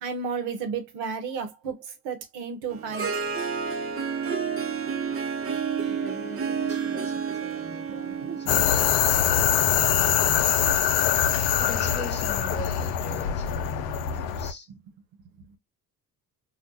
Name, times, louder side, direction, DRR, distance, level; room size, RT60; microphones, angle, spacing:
voice 1, 0.0-3.1 8.2-8.6 14.7-14.8, right 5 dB, 90° right, 0.9 m, -33 dB
Harp, 2.7-9.8, right 6 dB, 35° right, 0.7 m, -30 dB
voice 2, 5.8-14.7, left 1 dB, 25° left, 1.4 m, -42 dB
sound 1, 8.5-14.5, left 9 dB, 85° left, 0.5 m, -23 dB
2.4 x 2.2 x 3.9 m
supercardioid pair, 60°, 42 cm